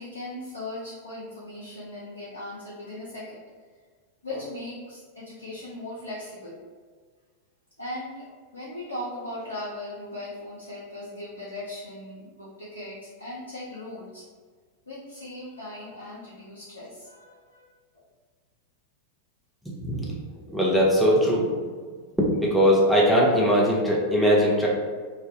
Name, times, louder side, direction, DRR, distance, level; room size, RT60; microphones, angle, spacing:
voice 1, 0.0-3.4 4.2-6.6 7.8-8.3 8.5-14.2 14.9-18.0, left 1 dB, 80° left, -7 dB, 0.6 m, -38 dB
voice 2, 19.6-20.1 20.5-21.7 22.2-24.7, equal, ahead, -5 dB, 0.6 m, -21 dB
3.2 x 2.2 x 2.7 m, 1.6 s
figure-of-eight pair, 90°, 0 cm